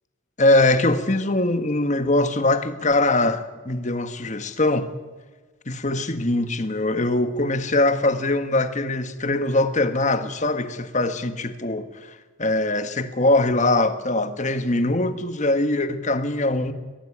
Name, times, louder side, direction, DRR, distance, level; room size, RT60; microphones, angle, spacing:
voice 1, 0.4-4.9 5.6-16.7, left 2 dB, 35° left, 1.5 m, -22 dB
23.0 x 17.5 x 8.7 m
head